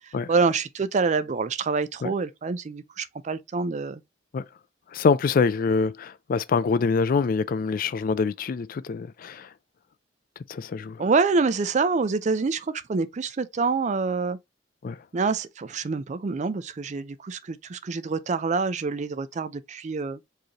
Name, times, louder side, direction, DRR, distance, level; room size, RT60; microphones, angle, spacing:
voice 1, 0.3-4.0 11.0-14.4 15.1-20.2, right 4 dB, 40° right, 0.4 m, -26 dB
voice 2, 4.9-9.5 10.5-11.0 14.8-15.0, left 5 dB, 50° left, 0.3 m, -25 dB
4.7 x 3.2 x 2.8 m
head